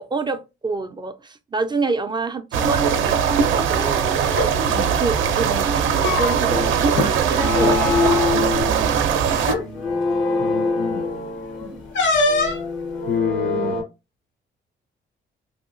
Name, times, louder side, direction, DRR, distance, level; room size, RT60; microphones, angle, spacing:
voice 1, 0.0-4.2 5.0-9.3 11.6-11.8, right 3 dB, 20° right, 0.3 m, -28 dB
sound 1, 2.5-9.5, right 7 dB, 80° right, 0.5 m, -20 dB
sound 2, 4.3-4.5 5.7-6.6 6.9-7.1 7.5-7.7 8.7-8.8 9.4-9.7 11.9-12.7, left 3 dB, 70° left, 0.8 m, -22 dB
sound 3, 6.5-13.8, left 4 dB, 90° left, 1.1 m, -25 dB
voice 2, 10.3-11.1 13.1-13.8, left 9 dB, 55° left, 0.4 m, -27 dB
3.0 x 2.7 x 2.5 m
cardioid pair, 90°, 20 cm